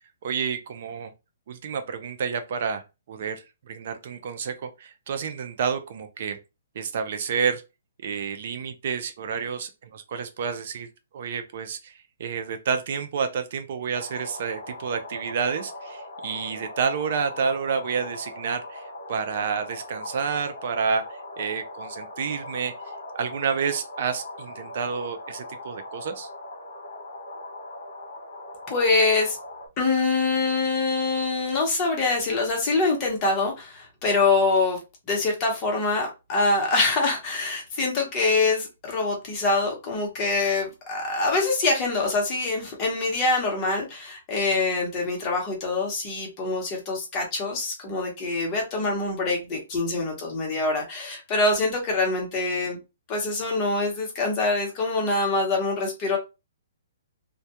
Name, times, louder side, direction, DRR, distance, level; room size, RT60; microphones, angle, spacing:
voice 1, 0.2-1.1 1.5-2.8 3.1-6.4 6.8-7.6 8.0-10.9 11.1-22.7 23.1-26.3, right 6 dB, 50° right, 0.4 m, -29 dB
sound 1, 13.9-29.7, left 2 dB, 70° left, 1.0 m, -40 dB
voice 2, 28.7-29.4 29.8-34.8 35.1-52.8 53.1-56.2, left 3 dB, 25° left, 0.9 m, -24 dB
2.2 x 2.2 x 2.8 m
hypercardioid pair, 160°, 0 cm